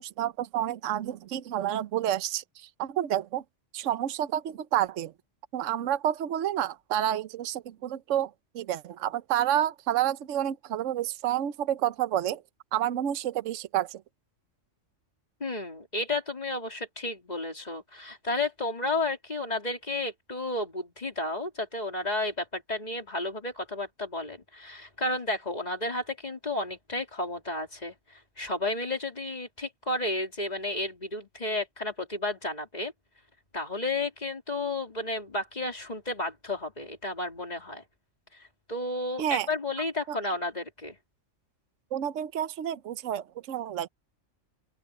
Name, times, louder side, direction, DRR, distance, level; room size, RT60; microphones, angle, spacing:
voice 1, 0.0-3.4 3.7-5.1 5.5-12.4 12.7-14.0 39.2-39.5 40.1-40.2 41.9-43.9, right 11 dB, 75° right, 1.1 m, -29 dB
voice 2, 15.4-32.9 33.5-37.8 38.3-41.0, left 2 dB, 30° left, 3.5 m, -32 dB
open air
omnidirectional pair, 1.3 m